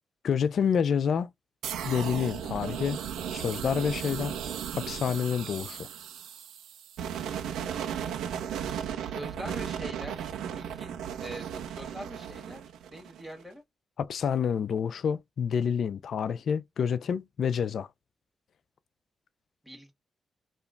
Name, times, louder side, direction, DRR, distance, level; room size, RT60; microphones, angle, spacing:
voice 1, 0.2-1.3 1.8-3.0 3.3-4.4 4.7-5.9 14.0-17.9, left 7 dB, 70° left, 0.4 m, -28 dB
sound 1, 1.6-13.4, right 9 dB, 85° right, 0.4 m, -36 dB
voice 2, 9.0-12.6 12.9-13.6 19.6-19.9, equal, 5° left, 1.7 m, -43 dB
2.9 x 2.2 x 3.6 m
supercardioid pair, 50°, 0 cm